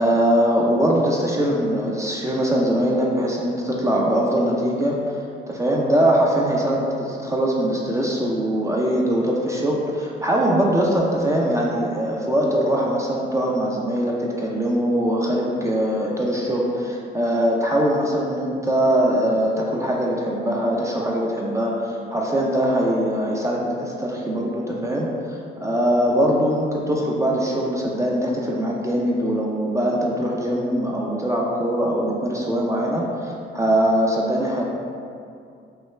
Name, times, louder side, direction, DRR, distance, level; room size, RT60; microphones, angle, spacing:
voice 1, 0.0-34.8, equal, 15° right, -3 dB, 0.4 m, -22 dB
3.2 x 2.3 x 3.0 m, 2.4 s
cardioid pair, 90°, 20 cm